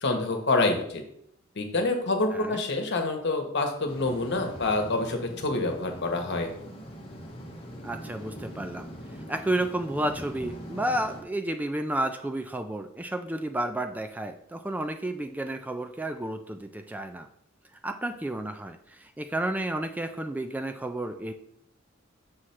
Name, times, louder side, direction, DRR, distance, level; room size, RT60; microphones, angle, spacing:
voice 1, 0.0-1.0 1.5-6.5, left 2 dB, 60° left, 4 dB, 1.1 m, -27 dB
sound 1, 3.9-11.2, equal, 30° left, 1.1 m, -42 dB
voice 2, 7.8-17.3 17.8-21.3, right 1 dB, 10° right, 6 dB, 0.3 m, -31 dB
6.2 x 3.2 x 5.7 m, 0.70 s
head